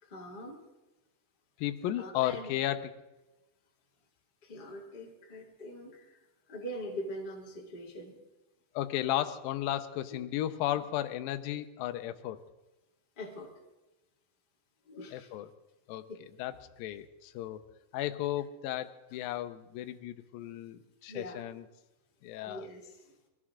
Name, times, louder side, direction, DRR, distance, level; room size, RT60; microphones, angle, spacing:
voice 1, 0.0-0.6 2.0-2.6 4.4-6.2 6.5-8.2 10.1-10.2 13.2-13.5 14.8-15.3 21.1-21.4 22.4-23.1, equal, 20° left, -1 dB, 1.4 m, -43 dB
voice 2, 1.6-3.0 8.8-12.4 15.1-15.5 15.9-16.0 16.4-17.6 17.9-21.7 22.2-22.7, left 13 dB, 75° left, 8 dB, 2.3 m, -34 dB
22.5 x 16.0 x 3.7 m, 1.0 s
omnidirectional pair, 4.6 m